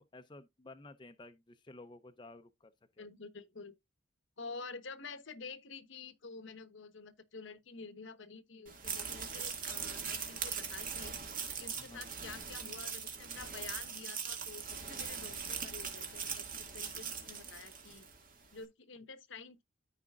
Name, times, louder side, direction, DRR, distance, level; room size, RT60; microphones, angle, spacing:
voice 1, 0.0-2.7 3.0-3.1 11.8-12.1, left 2 dB, 25° left, 0.5 m, -53 dB
voice 2, 3.0-3.7 4.4-11.1 11.6-18.1 18.5-19.6, left 4 dB, 70° left, 1.0 m, -49 dB
sound 1, 8.7-18.2, right 6 dB, 45° right, 1.9 m, -41 dB
13.5 x 4.9 x 2.3 m
head